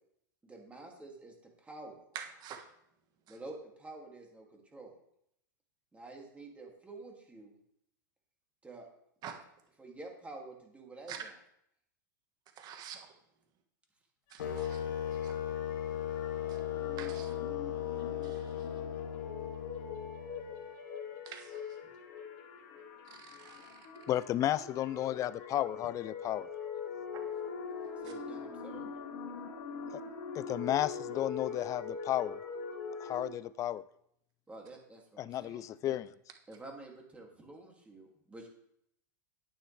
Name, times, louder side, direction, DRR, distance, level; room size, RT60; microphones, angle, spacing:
voice 1, 0.4-1.3 1.6-2.0 3.3-4.9 5.9-7.5 8.6-8.9 9.8-11.3 28.0-28.9 34.5-36.0 36.5-38.5, right 2 dB, 10° right, 0 dB, 2.4 m, -49 dB
voice 2, 2.1-2.6 9.2-9.3 11.1-11.2 12.6-13.1 14.3-14.8 15.2-15.3 17.0-17.3 18.2-18.4 21.3-21.6 23.4-23.8 27.1-27.2, right 9 dB, 40° right, 5 dB, 1.5 m, -46 dB
sound 1, 14.3-33.3, left 5 dB, 50° left, 2.1 m, -43 dB
sound 2, 14.4-20.5, left 10 dB, 80° left, 1.9 m, -37 dB
voice 3, 24.1-26.5 29.9-30.0 30.3-32.4 33.0-33.8 35.2-36.1, left 12 dB, 30° left, 18 dB, 0.4 m, -33 dB
9.8 x 9.1 x 3.3 m, 0.73 s
hypercardioid pair, 115°, 11 cm